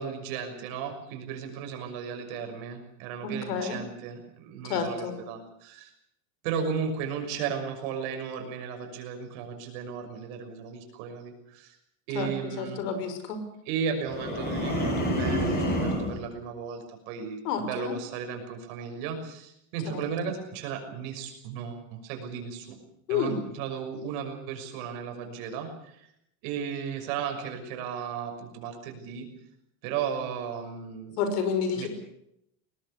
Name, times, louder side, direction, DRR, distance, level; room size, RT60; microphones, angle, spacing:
voice 1, 0.0-5.9 6.4-11.8 12.1-12.8 13.7-22.8 23.1-26.1 26.4-29.3 29.8-31.2 31.8-31.9, right 7 dB, 60° right, 5 dB, 6.3 m, -35 dB
voice 2, 3.2-3.8 4.6-5.1 12.1-12.3 12.6-13.4 17.4-17.9 23.1-23.4 31.2-31.9, left 6 dB, 85° left, 9 dB, 5.9 m, -29 dB
sound 1, 14.1-16.2, equal, 20° left, 6.7 m, -28 dB
22.0 x 19.0 x 8.4 m, 0.77 s
cardioid pair, 170°, 46 cm